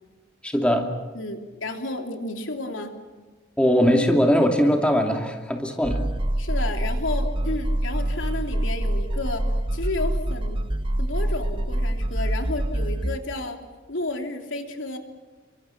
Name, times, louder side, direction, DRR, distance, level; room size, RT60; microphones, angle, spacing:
voice 1, 0.4-0.9 3.6-6.1, equal, 5° left, 2 dB, 2.7 m, -20 dB
voice 2, 1.1-3.0 6.4-9.4 9.7-10.7 11.0-13.6 13.9-15.0, left 2 dB, 80° left, 4 dB, 3.1 m, -31 dB
sound 1, 5.8-13.2, right 1 dB, 25° right, 0.8 m, -26 dB
29.5 x 24.5 x 6.0 m, 1.3 s
head